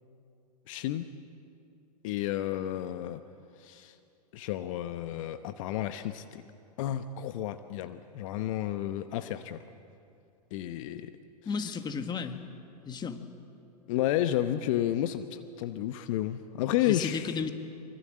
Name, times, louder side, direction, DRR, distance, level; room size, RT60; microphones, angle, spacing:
voice 1, 0.7-1.1 2.0-3.2 3.6-4.0 4.3-6.4 6.8-9.6 10.5-11.1 11.6-11.7 13.9-17.4, left 12 dB, 50° left, 10 dB, 1.0 m, -31 dB
voice 2, 11.4-12.4 12.8-13.2 16.9-17.5, left 5 dB, 20° left, 8 dB, 1.6 m, -33 dB
25.0 x 24.5 x 7.7 m, 2.6 s
hypercardioid pair, 105°, 21 cm